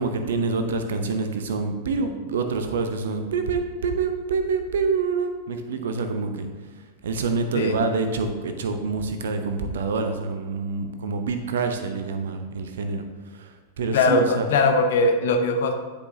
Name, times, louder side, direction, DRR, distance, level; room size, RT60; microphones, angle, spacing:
voice 1, 0.0-6.5 7.0-13.1 13.3-14.5, right 4 dB, 60° right, 7 dB, 0.7 m, -26 dB
voice 2, 13.9-15.7, left 3 dB, 60° left, 5 dB, 0.8 m, -20 dB
10.0 x 5.1 x 2.7 m, 1.4 s
figure-of-eight pair, 90°, 0 cm